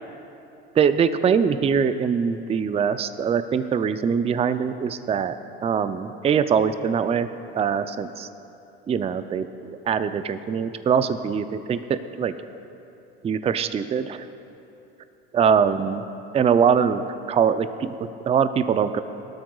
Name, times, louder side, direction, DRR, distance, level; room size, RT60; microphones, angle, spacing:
voice 1, 0.8-5.4 5.6-7.3 7.5-8.3 8.9-12.3 13.2-14.3 15.3-16.0 16.3-17.0 17.3-19.0, right 7 dB, 20° right, 11 dB, 0.4 m, -22 dB
18.0 x 13.0 x 2.4 m, 2.8 s
hypercardioid pair, 85°, 30 cm